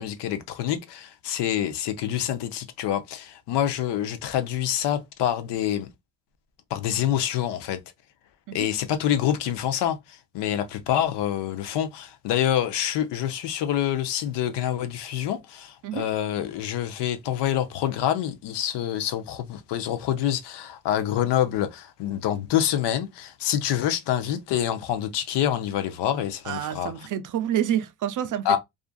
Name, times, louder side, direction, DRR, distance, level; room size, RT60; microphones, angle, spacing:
voice 1, 0.0-5.9 6.7-7.8 8.5-26.9 28.5-28.6, left 10 dB, 70° left, 0.6 m, -26 dB
voice 2, 26.4-28.6, right 10 dB, 45° right, 0.4 m, -28 dB
2.5 x 2.4 x 2.3 m
supercardioid pair, 70°, 44 cm